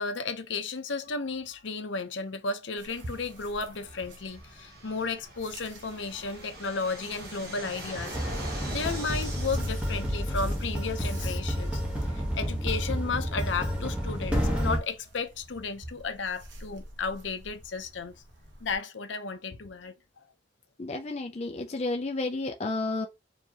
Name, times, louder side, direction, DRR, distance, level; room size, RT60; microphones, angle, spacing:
voice 1, 0.0-8.3 8.7-18.2 18.6-20.2, left 4 dB, 75° left, 0.7 m, -34 dB
Fixed-wing aircraft airplane, 2.8-12.1, right 1 dB, 55° right, 1.3 m, -44 dB
sound 1, 2.8-18.8, right 1 dB, 70° right, 1.0 m, -48 dB
sound 2, 8.1-14.8, equal, 5° right, 1.0 m, -30 dB
voice 2, 20.8-23.1, left 2 dB, 35° left, 0.4 m, -31 dB
4.7 x 2.8 x 2.9 m
head